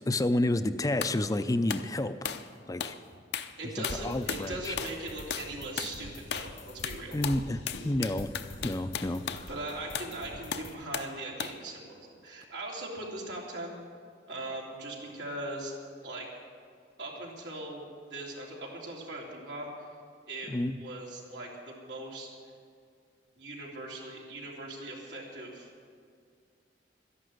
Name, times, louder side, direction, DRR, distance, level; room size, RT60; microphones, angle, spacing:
voice 1, 0.0-2.3 2.7-3.0 3.8-4.8 7.1-8.3 8.6-9.5 20.5-20.8, left 1 dB, 20° left, 10 dB, 0.4 m, -30 dB
sound 1, 1.0-1.2 1.7-1.9 2.2-2.5 2.8-3.0 3.3-3.5 3.8-4.5 4.8-5.0 5.3-5.5 5.8-6.0 6.3-6.5 6.8-9.5 9.9-10.1 10.5-11.1 11.4-11.6, left 7 dB, 65° left, 0.7 m, -36 dB
voice 2, 3.6-7.2 9.5-13.8 14.3-15.7 16.0-16.3 17.0-19.9 20.3-22.4 23.4-25.7, right 2 dB, 90° right, -2 dB, 3.3 m, -40 dB
sound 2, 3.9-10.7, left 1 dB, 90° left, 1.9 m, -46 dB
12.5 x 11.5 x 7.9 m, 2.2 s
head